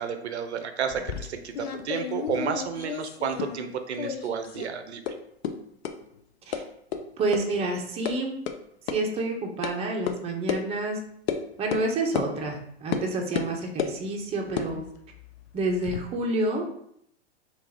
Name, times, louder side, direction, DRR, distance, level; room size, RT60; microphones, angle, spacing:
voice 1, 0.0-5.0, right 7 dB, 85° right, 7 dB, 0.5 m, -31 dB
sound 1, 0.9-3.7 4.0-4.7 5.1-5.2 5.4-5.5 5.8-5.9 6.5-6.6 6.9-7.0 7.3-7.4 7.8-8.1 8.5-8.6 8.9-9.0 9.6-9.7 10.1-10.2 10.5-10.6 11.3-11.4 11.7-11.9 12.2-12.3 12.9-13.1 13.4-14.0 14.5-16.0, left 8 dB, 65° left, 0.5 m, -32 dB
voice 2, 7.2-8.3 8.9-11.0 11.6-14.8 15.5-16.6, right 2 dB, 20° right, 1 dB, 0.5 m, -28 dB
3.3 x 2.3 x 3.3 m, 0.71 s
hypercardioid pair, 100°, 33 cm